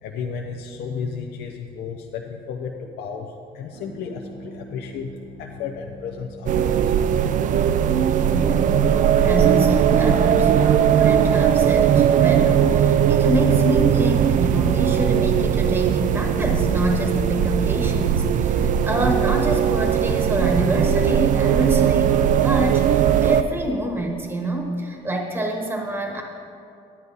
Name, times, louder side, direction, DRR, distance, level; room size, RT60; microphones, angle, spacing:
voice 1, 0.0-7.0, left 6 dB, 70° left, 2 dB, 0.7 m, -33 dB
sound 1, 3.7-13.9, right 3 dB, 75° right, 1.1 m, -42 dB
sound 2, 6.5-23.4, right 9 dB, 50° right, 0.4 m, -19 dB
voice 2, 8.3-8.7 9.2-26.2, right 1 dB, 15° right, 1 dB, 1.1 m, -27 dB
10.0 x 9.7 x 4.0 m, 2.5 s
cardioid pair, 110°, 17 cm